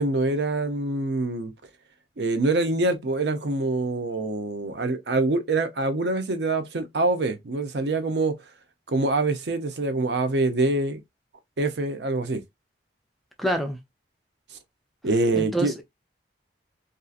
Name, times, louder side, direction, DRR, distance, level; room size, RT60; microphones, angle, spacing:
voice 1, 0.0-1.5 2.2-8.4 8.9-11.0 11.6-12.4 15.0-15.7, right 2 dB, 65° right, 0.6 m, -25 dB
voice 2, 13.4-13.8 15.3-15.8, right 1 dB, ahead, 0.3 m, -26 dB
2.7 x 2.4 x 2.3 m
head